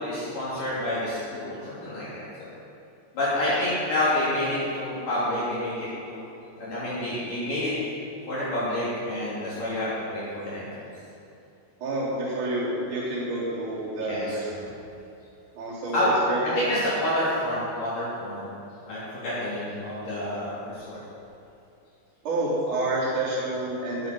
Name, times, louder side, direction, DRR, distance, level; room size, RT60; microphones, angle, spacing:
voice 1, 0.0-2.5 3.1-5.8 6.1-6.2 6.6-7.7 8.3-10.9 14.0-14.3 14.6-14.7 15.9-16.2 16.6-18.5 18.9-21.0, left 1 dB, 50° left, -10 dB, 4.5 m, -28 dB
voice 2, 11.8-14.7 15.6-16.0 16.3-16.4 22.2-24.1, right 2 dB, 45° right, -7 dB, 4.6 m, -29 dB
19.0 x 8.7 x 6.2 m, 2.8 s
omnidirectional pair, 5.1 m